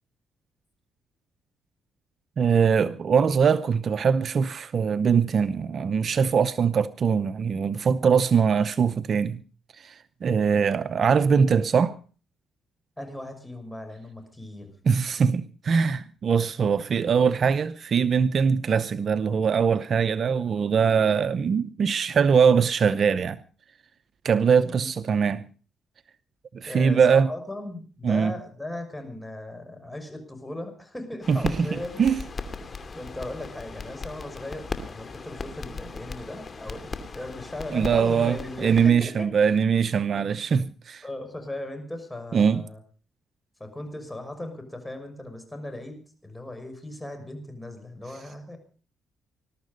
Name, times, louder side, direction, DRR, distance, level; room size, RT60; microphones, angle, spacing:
voice 1, 2.4-9.4 9.8-12.0 14.9-23.4 24.2-25.5 26.5-27.3 28.0-28.3 31.3-31.4 32.0-32.2 37.7-41.0 42.3-42.6, right 6 dB, 50° right, 0.8 m, -22 dB
voice 2, 13.0-14.7 24.6-24.9 26.6-32.2 32.9-39.3 40.1-40.3 41.0-42.8 43.6-48.6, left 1 dB, 10° left, 6.0 m, -37 dB
sound 1, 31.2-38.9, left 4 dB, 35° left, 2.6 m, -37 dB
21.0 x 13.0 x 5.3 m
cardioid pair, 90°, 0 cm